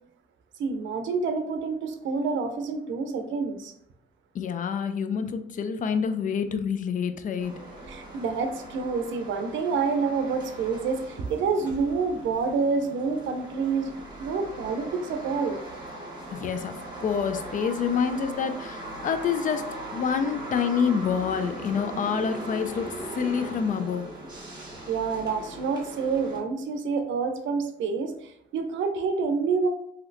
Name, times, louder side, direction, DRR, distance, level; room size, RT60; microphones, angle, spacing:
voice 1, 0.6-3.7 7.9-13.9 14.2-15.6 24.9-29.7, right 5 dB, 70° right, 7 dB, 0.5 m, -28 dB
voice 2, 4.3-7.6 16.3-16.7 17.0-19.7 19.9-22.9 23.1-24.1, left 6 dB, 40° left, 9 dB, 0.4 m, -27 dB
sound 1, 7.4-26.4, right 1 dB, 20° right, 1.4 m, -39 dB
3.1 x 2.8 x 2.5 m, 0.78 s
cardioid pair, 90°, 20 cm